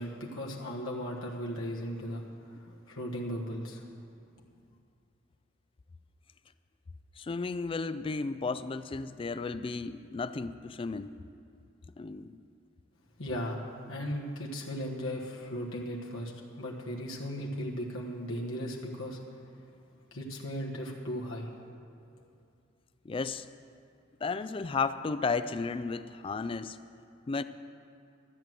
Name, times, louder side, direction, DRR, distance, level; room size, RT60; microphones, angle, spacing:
voice 1, 0.0-3.8 13.2-13.6 13.9-19.2 20.1-21.5 22.0-22.1, equal, 80° left, -2 dB, 1.4 m, -37 dB
voice 2, 7.2-11.1 12.0-12.4 23.1-23.5 24.2-26.8 27.3-27.4, left 4 dB, 25° left, 13 dB, 0.3 m, -33 dB
13.0 x 7.8 x 7.6 m, 2.5 s
head